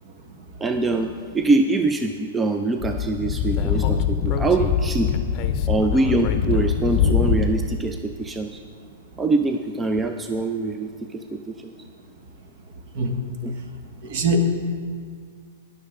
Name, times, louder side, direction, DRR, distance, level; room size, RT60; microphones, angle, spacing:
voice 1, 0.6-5.1 5.7-8.6 9.2-11.7 13.4-13.5, right 3 dB, 10° right, 6 dB, 0.4 m, -24 dB
Speech / Wind, 2.8-7.7, left 7 dB, 35° left, 0.7 m, -23 dB
voice 2, 14.0-14.5, equal, 50° right, 4 dB, 1.3 m, -22 dB
17.0 x 6.5 x 3.7 m, 2.1 s
hypercardioid pair, 120°, 0 cm